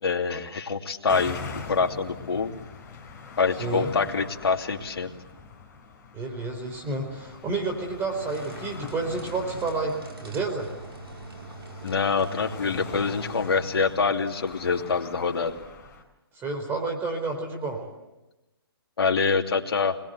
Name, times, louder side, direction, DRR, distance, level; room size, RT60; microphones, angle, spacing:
voice 1, 0.0-2.6 3.4-5.1 11.8-15.5 19.0-20.0, left 5 dB, 75° left, 4 dB, 2.8 m, -25 dB
sound 1, 1.1-16.0, left 5 dB, 20° left, 4.0 m, -42 dB
voice 2, 3.6-3.9 6.1-10.7 16.3-17.8, right 3 dB, 15° right, 3 dB, 4.4 m, -30 dB
sound 2, 8.2-13.9, right 3 dB, 70° right, 4.5 m, -43 dB
27.0 x 21.5 x 8.2 m, 1.0 s
hypercardioid pair, 140°, 13 cm